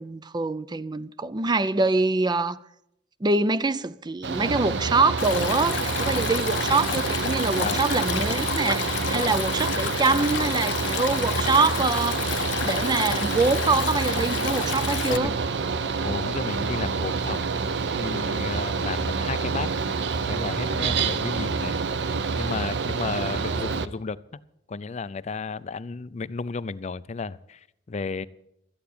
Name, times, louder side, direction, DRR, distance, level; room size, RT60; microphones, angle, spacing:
voice 1, 0.0-2.6 3.2-12.3 12.6-15.3, right 3 dB, 25° right, 0.4 m, -24 dB
Mechanical fan, 4.2-23.9, right 4 dB, 70° right, 0.6 m, -27 dB
Stream, 5.2-15.2, left 9 dB, 85° left, 0.6 m, -31 dB
voice 2, 15.1-15.4 16.0-17.5 17.9-19.7 20.3-21.8 22.4-24.4 24.7-28.3, left 4 dB, 40° left, 0.4 m, -33 dB
13.5 x 8.1 x 8.6 m
head